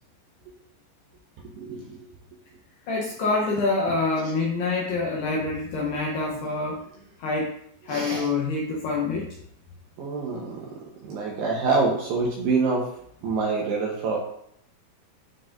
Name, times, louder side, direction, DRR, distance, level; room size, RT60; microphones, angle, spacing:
voice 1, 1.4-2.1 4.2-4.3 6.3-6.4 7.9-8.3 10.0-12.9 13.2-14.2, right 4 dB, 75° right, -2 dB, 2.6 m, -27 dB
voice 2, 2.9-6.8 7.2-7.5 7.8-9.3, left 3 dB, 75° left, -3 dB, 2.5 m, -26 dB
12.0 x 4.7 x 2.6 m, 0.69 s
omnidirectional pair, 5.8 m